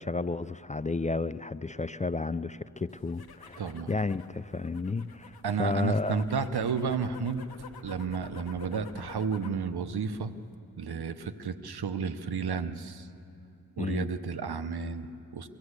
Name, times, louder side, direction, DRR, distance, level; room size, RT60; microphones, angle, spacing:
voice 1, 0.0-6.2 13.8-14.1, left 3 dB, 20° left, 15 dB, 0.4 m, -32 dB
sound 1, 2.9-9.6 10.0-10.5, left 7 dB, 70° left, 1.1 m, -50 dB
voice 2, 3.6-3.9 5.4-7.5 7.8-10.3 10.8-13.1 13.8-15.5, right 5 dB, 75° right, 11 dB, 0.9 m, -32 dB
23.5 x 15.5 x 8.2 m, 2.7 s
cardioid pair, 55°, 38 cm